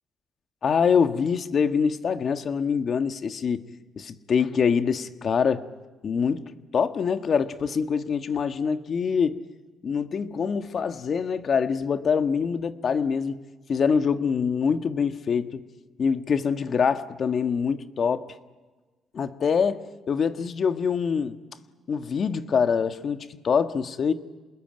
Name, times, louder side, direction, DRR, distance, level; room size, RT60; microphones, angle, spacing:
voice 1, 0.6-3.6 4.0-5.7 6.0-6.4 6.7-9.4 9.8-13.4 13.7-15.6 16.0-18.3 19.1-21.3 21.9-23.2 23.4-24.1, left 6 dB, 50° left, 1.5 m, -24 dB
27.5 x 20.5 x 9.2 m
cardioid pair, 90°, 0 cm